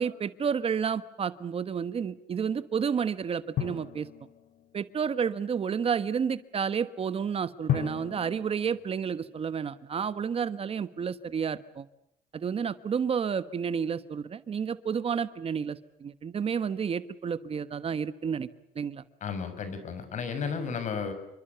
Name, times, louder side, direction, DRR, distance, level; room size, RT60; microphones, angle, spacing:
voice 1, 0.0-4.1 4.7-11.8 12.3-18.5 18.7-19.0, right 7 dB, 40° right, 13 dB, 1.3 m, -30 dB
Drum, 3.6-5.1 7.7-9.9, left 10 dB, 75° left, 2.4 m, -35 dB
voice 2, 19.2-21.1, left 6 dB, 55° left, 11 dB, 6.2 m, -33 dB
28.0 x 25.0 x 7.0 m, 0.85 s
cardioid pair, 105°, 15 cm